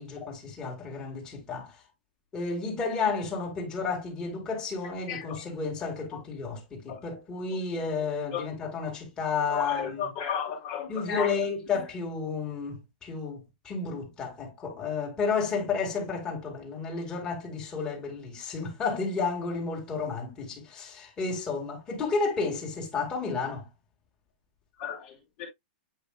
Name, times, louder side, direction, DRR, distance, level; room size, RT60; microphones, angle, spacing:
voice 1, 0.0-1.7 2.3-10.1 10.9-23.7, left 4 dB, 15° left, 2.1 m, -32 dB
voice 2, 5.1-5.4 6.9-7.0 8.3-8.4 9.5-11.3 24.8-25.1 25.4-25.5, left 7 dB, 35° left, 1.7 m, -33 dB
8.2 x 5.1 x 2.3 m
supercardioid pair, 170°, 5 cm